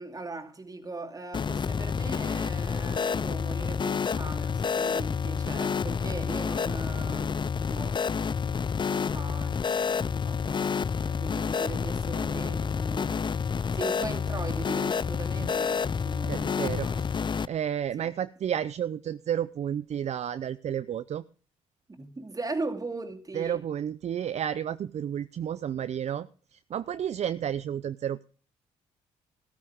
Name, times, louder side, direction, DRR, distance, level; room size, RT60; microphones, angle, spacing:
voice 1, 0.0-8.0 8.9-13.2 13.7-17.0 18.0-18.1 21.9-23.6, right 3 dB, 25° right, 2.5 m, -39 dB
sound 1, 1.3-17.5, left 6 dB, 35° left, 0.5 m, -29 dB
voice 2, 16.3-17.1 17.5-21.2 23.3-26.3 26.5-28.2, right 9 dB, 55° right, 0.6 m, -31 dB
13.5 x 12.5 x 3.6 m
supercardioid pair, 55°, 14 cm